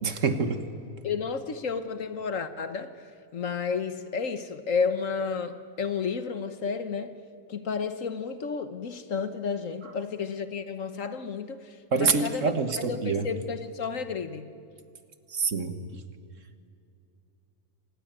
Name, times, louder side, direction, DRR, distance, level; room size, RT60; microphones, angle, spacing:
voice 1, 0.0-0.6 11.9-13.3 15.3-16.0, right 4 dB, 55° right, 9 dB, 1.7 m, -26 dB
voice 2, 1.0-3.0 3.3-7.2 7.5-12.5 12.8-14.5, left 5 dB, 60° left, 11 dB, 1.4 m, -32 dB
26.0 x 20.0 x 9.0 m, 2.6 s
omnidirectional pair, 1.6 m